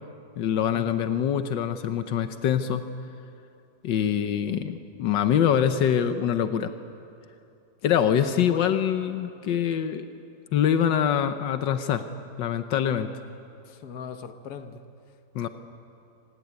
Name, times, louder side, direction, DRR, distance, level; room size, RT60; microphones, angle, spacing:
voice 1, 0.4-2.9 3.8-6.7 7.8-10.0 10.5-12.0 12.4-13.1 15.3-15.5, left 9 dB, 85° left, 9 dB, 1.6 m, -24 dB
voice 2, 8.2-8.8 13.6-14.8 15.4-15.5, left 7 dB, 65° left, 8 dB, 1.7 m, -38 dB
25.5 x 18.5 x 9.7 m, 2.6 s
omnidirectional pair, 1.9 m